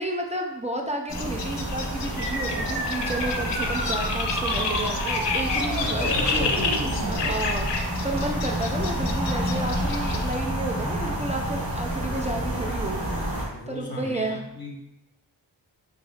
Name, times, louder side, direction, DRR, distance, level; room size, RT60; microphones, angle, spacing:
voice 1, 0.0-14.4, right 1 dB, 15° right, 1 dB, 0.4 m, -32 dB
sound 1, 1.1-10.3, left 5 dB, 75° left, 0.5 m, -31 dB
sound 2, 1.1-13.5, right 1 dB, 85° right, 1.2 m, -29 dB
sound 3, 2.2-7.2, right 1 dB, 60° right, 1.0 m, -32 dB
voice 2, 5.7-6.8 13.5-14.7, left 1 dB, 25° left, 0 dB, 0.8 m, -35 dB
3.0 x 2.7 x 3.1 m, 0.89 s
cardioid pair, 45°, 43 cm